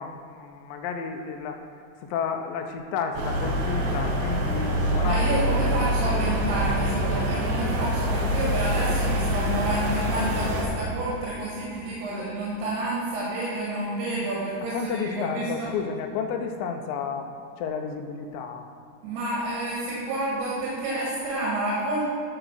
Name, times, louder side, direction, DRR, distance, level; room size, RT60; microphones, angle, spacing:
voice 1, 0.0-1.6 2.0-5.8 14.7-17.3 17.6-18.7, left 6 dB, 90° left, 4 dB, 2.0 m, -32 dB
sound 1, 3.1-10.6, equal, 65° right, 2.7 m, -25 dB
voice 2, 5.0-15.7 19.0-22.1, right 1 dB, 90° right, -6 dB, 3.6 m, -29 dB
11.0 x 3.9 x 6.0 m, 2.5 s
omnidirectional pair, 4.6 m